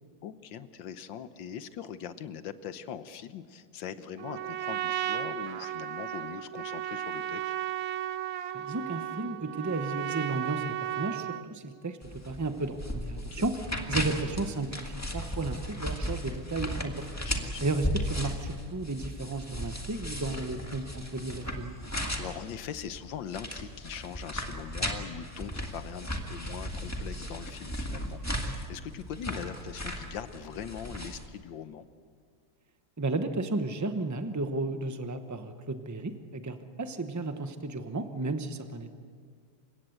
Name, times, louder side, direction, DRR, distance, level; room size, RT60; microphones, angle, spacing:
voice 1, 0.2-7.5 13.1-13.4 17.2-17.6 22.1-31.9, left 9 dB, 70° left, 12 dB, 1.6 m, -41 dB
Trumpet, 4.2-11.5, right 11 dB, 75° right, 1.5 m, -34 dB
voice 2, 8.5-12.0 12.3-13.6 13.9-17.1 17.6-21.8 33.0-38.9, right 2 dB, 20° right, 8 dB, 0.5 m, -33 dB
sound 1, 12.0-31.3, equal, 10° left, 1.6 m, -36 dB
28.5 x 17.0 x 8.0 m, 2.1 s
omnidirectional pair, 2.2 m